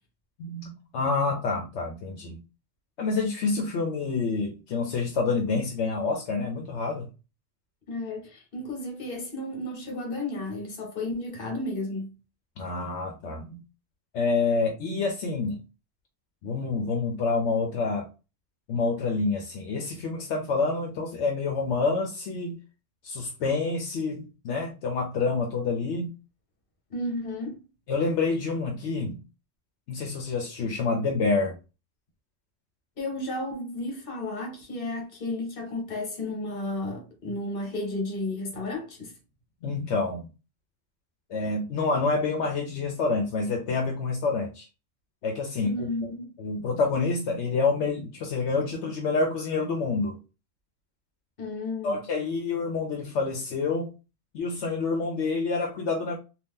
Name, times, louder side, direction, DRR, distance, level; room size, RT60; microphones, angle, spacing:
voice 1, 0.4-2.4 3.0-7.1 12.6-13.6 14.1-15.6 16.4-18.1 18.7-22.6 23.0-26.1 27.9-29.2 29.9-31.6 39.6-40.3 41.3-44.7 45.2-46.1 46.4-50.2 51.8-53.9 54.3-56.2, left 4 dB, 80° left, 0.9 m, -27 dB
voice 2, 7.9-12.1 26.9-27.6 33.0-39.1 45.6-46.3 51.4-52.0, left 2 dB, 55° left, 1.2 m, -33 dB
2.8 x 2.3 x 3.6 m
omnidirectional pair, 1.2 m